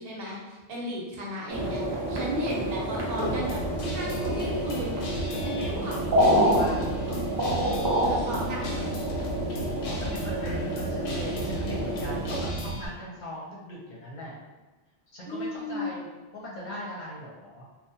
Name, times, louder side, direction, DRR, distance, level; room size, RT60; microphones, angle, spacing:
voice 1, 0.0-3.6 3.9-5.0 5.4-6.3 7.1-7.2 7.8-8.9 15.3-15.9, equal, 65° right, -4 dB, 0.8 m, -35 dB
sound 1, 1.5-12.5, right 1 dB, 40° right, 0.3 m, -28 dB
Guitar, 3.2-12.9, equal, 90° left, 0.9 m, -34 dB
voice 2, 5.7-6.8 9.8-14.4 15.1-16.1 16.3-17.7, equal, 50° left, -6 dB, 0.7 m, -40 dB
2.4 x 2.1 x 2.7 m, 1.2 s
omnidirectional pair, 1.1 m